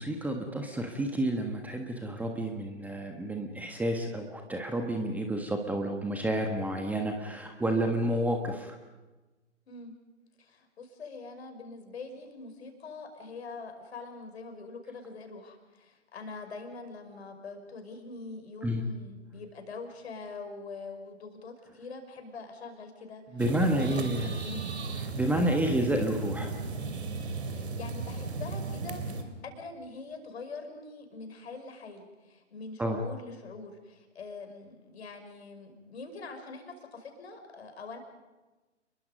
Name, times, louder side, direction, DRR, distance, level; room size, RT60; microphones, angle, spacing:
voice 1, 0.0-8.8 18.6-18.8 23.3-24.3 25.0-26.5 32.8-33.0, right 1 dB, 5° right, 3 dB, 1.4 m, -30 dB
voice 2, 10.4-23.4 23.7-24.7 27.5-38.0, left 3 dB, 60° left, 6 dB, 5.6 m, -44 dB
sound 1, 23.4-29.2, right 4 dB, 60° right, 3.4 m, -35 dB
29.5 x 22.5 x 5.3 m, 1.2 s
figure-of-eight pair, 130°, 36 cm